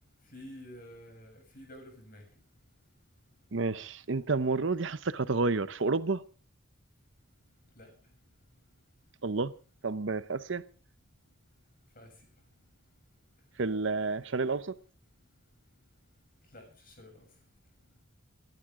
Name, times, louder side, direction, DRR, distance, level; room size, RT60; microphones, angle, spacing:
voice 1, 0.3-2.2 7.8-7.9 11.9-12.1 16.5-17.2, equal, 45° left, 7.7 m, -49 dB
voice 2, 3.5-6.2 9.2-9.5 9.8-10.6 13.6-14.7, right 3 dB, 65° right, 0.8 m, -30 dB
27.0 x 12.0 x 3.7 m
head